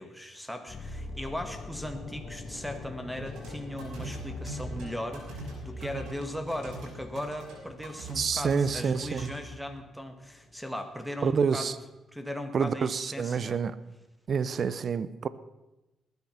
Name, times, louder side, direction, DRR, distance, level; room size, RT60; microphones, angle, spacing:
voice 1, 0.0-11.7 12.1-13.6, left 1 dB, ahead, 7 dB, 1.7 m, -38 dB
sound 1, 0.7-10.7 10.9-11.1, left 3 dB, 45° left, 2.4 m, -45 dB
sound 2, 3.2-9.4, right 1 dB, 85° right, 5.6 m, -41 dB
voice 2, 8.2-9.3 11.2-11.8 12.5-13.8 14.3-15.3, right 6 dB, 50° right, 16 dB, 0.8 m, -27 dB
20.0 x 9.6 x 5.8 m, 1.0 s
cardioid pair, 90°, 0 cm